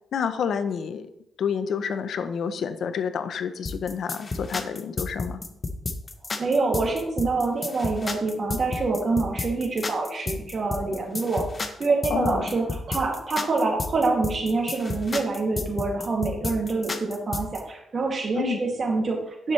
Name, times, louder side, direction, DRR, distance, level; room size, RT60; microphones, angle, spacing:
voice 1, 0.1-1.1 1.4-5.4 12.1-12.5 18.3-18.6, left 7 dB, 75° left, 10 dB, 0.7 m, -29 dB
sound 1, 3.7-17.6, left 3 dB, 35° left, 1.0 m, -31 dB
voice 2, 6.4-11.4 11.8-19.5, right 3 dB, 50° right, 0 dB, 2.5 m, -26 dB
9.7 x 7.1 x 3.3 m, 0.82 s
cardioid pair, 75°, 0 cm